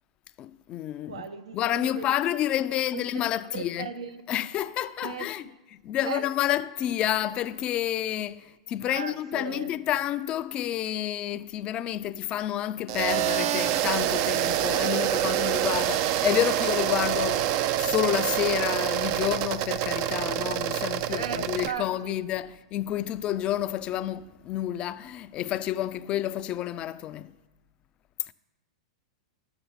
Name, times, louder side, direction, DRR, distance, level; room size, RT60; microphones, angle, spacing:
voice 1, 0.4-1.2 1.5-3.9 4.3-27.3, left 12 dB, 35° left, 0.4 m, -29 dB
voice 2, 1.1-2.1 2.9-3.0 3.5-4.3 5.0-5.3 6.0-6.3 8.8-9.7 21.1-22.3, right 6 dB, 85° right, 0.7 m, -37 dB
sound 1, 12.9-21.7, right 12 dB, 50° right, 0.4 m, -26 dB
11.5 x 6.9 x 4.2 m
hypercardioid pair, 120°, 3 cm